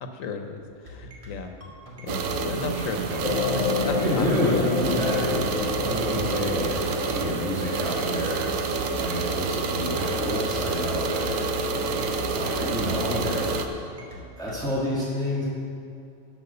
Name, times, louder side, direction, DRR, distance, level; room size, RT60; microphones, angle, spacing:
voice 1, 0.0-1.5 2.0-4.3 14.1-14.2, left 4 dB, 85° left, 6 dB, 1.3 m, -35 dB
sound 1, 0.9-14.6, left 2 dB, 25° right, 1.8 m, -44 dB
sound 2, 2.1-13.7, right 4 dB, 85° right, 1.1 m, -28 dB
sound 3, 3.2-12.0 12.5-12.6, left 6 dB, 45° left, 0.5 m, -32 dB
voice 2, 4.0-8.4 8.9-13.8 14.4-15.4, left 1 dB, 5° left, -7 dB, 2.0 m, -29 dB
12.0 x 5.3 x 6.8 m, 2.4 s
omnidirectional pair, 1.3 m